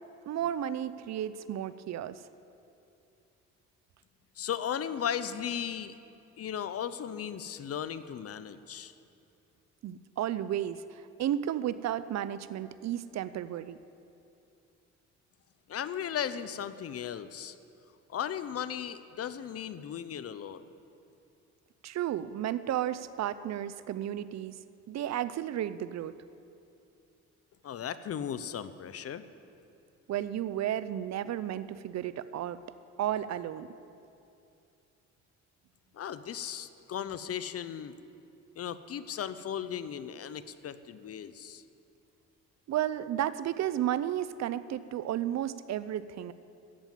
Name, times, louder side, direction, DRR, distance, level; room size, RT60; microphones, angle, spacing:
voice 1, 0.3-2.2 9.8-13.8 21.8-24.5 24.9-26.1 30.1-32.6 33.0-33.7 42.7-46.3, right 11 dB, 60° right, 15 dB, 0.6 m, -33 dB
voice 2, 4.4-6.0 6.4-8.9 15.7-17.6 18.1-20.7 27.6-29.2 35.9-37.9 38.6-41.6, left 9 dB, 50° left, 14 dB, 0.7 m, -36 dB
13.5 x 8.9 x 7.5 m, 2.7 s
cardioid pair, 90°, 30 cm